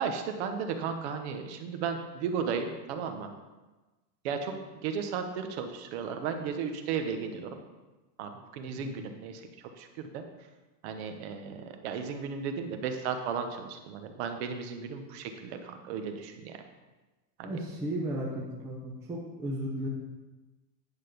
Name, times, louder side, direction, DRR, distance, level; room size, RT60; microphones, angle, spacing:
voice 1, 0.0-3.3 4.2-4.5 4.8-7.6 8.2-9.5 9.7-10.2 10.8-16.6 17.4-17.6, right 6 dB, 45° right, 6 dB, 1.0 m, -35 dB
voice 2, 17.4-19.9, right 1 dB, 5° right, -4 dB, 0.6 m, -35 dB
10.0 x 6.3 x 5.1 m, 1.2 s
supercardioid pair, 170°, 48 cm